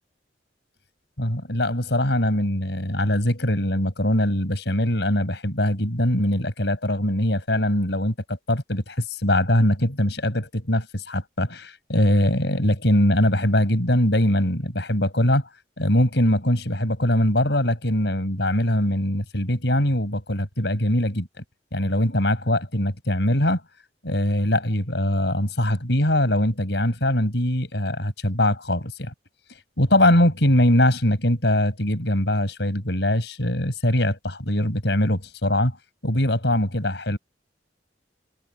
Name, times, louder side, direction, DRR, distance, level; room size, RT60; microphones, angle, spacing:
voice 1, 1.2-15.4 15.8-21.3 21.7-23.6 24.0-29.1 29.8-35.8 36.0-37.2, left 1 dB, 70° left, 7.7 m, -22 dB
head